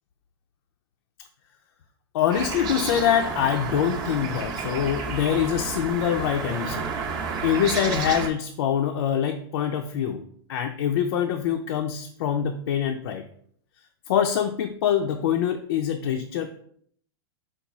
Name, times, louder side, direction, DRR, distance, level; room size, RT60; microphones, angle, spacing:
voice 1, 2.1-6.9 7.4-10.2 10.5-13.2 14.1-16.6, left 9 dB, 70° left, 4 dB, 0.4 m, -24 dB
sound 1, 2.3-8.3, right 5 dB, 30° right, 0.6 m, -31 dB
4.7 x 2.3 x 4.0 m, 0.62 s
hypercardioid pair, 130°, 13 cm